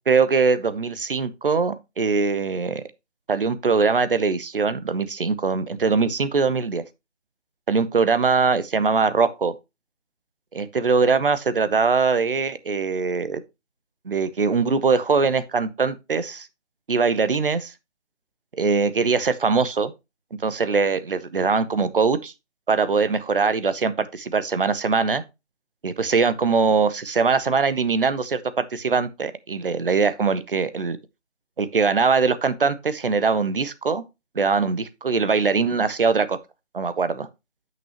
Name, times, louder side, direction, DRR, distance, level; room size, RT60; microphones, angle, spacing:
voice 1, 0.1-2.8 3.3-6.8 7.7-9.5 10.5-13.4 14.0-16.5 16.9-17.7 18.6-19.9 20.4-22.3 22.7-25.2 25.8-31.0 31.6-34.0 34.3-36.4 36.7-37.3, right 4 dB, 50° right, 0.8 m, -22 dB
8.5 x 6.2 x 2.9 m
figure-of-eight pair, 155°, 35 cm